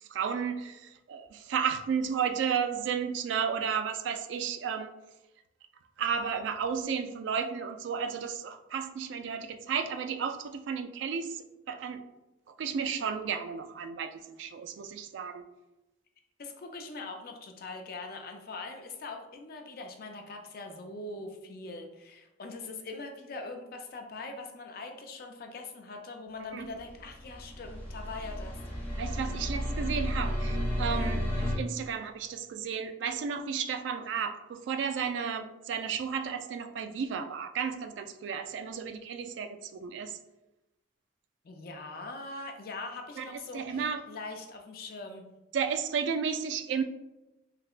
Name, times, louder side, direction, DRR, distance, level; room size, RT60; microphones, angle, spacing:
voice 1, 0.0-4.9 6.0-12.0 12.6-15.5 26.5-26.7 28.9-40.2 43.2-43.3 43.5-44.0 45.5-46.8, right 6 dB, 80° right, 8 dB, 0.3 m, -33 dB
voice 2, 16.4-28.6 30.9-31.1 41.4-45.3, left 3 dB, 55° left, 4 dB, 0.4 m, -42 dB
sound 1, 26.8-31.6, equal, 10° left, 0.8 m, -32 dB
3.3 x 2.8 x 2.4 m, 0.98 s
head